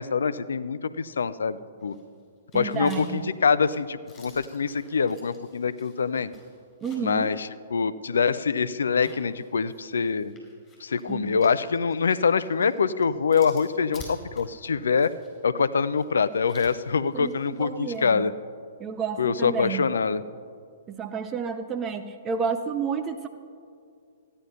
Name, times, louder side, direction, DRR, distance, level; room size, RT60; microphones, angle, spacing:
voice 1, 0.0-2.0 2.5-6.3 7.0-10.3 10.8-15.1 15.4-18.3 19.2-20.3, left 5 dB, 65° left, 16 dB, 0.5 m, -25 dB
sound 1, 1.8-2.2 2.5-7.2 7.6-7.7 8.8-18.0, left 2 dB, 20° left, 4.3 m, -51 dB
voice 2, 2.5-3.3 6.8-7.3 11.1-11.3 17.1-18.2 18.8-19.9 20.9-23.3, right 6 dB, 20° right, 8 dB, 0.6 m, -31 dB
14.5 x 9.9 x 5.7 m, 2.2 s
figure-of-eight pair, 115°, 0 cm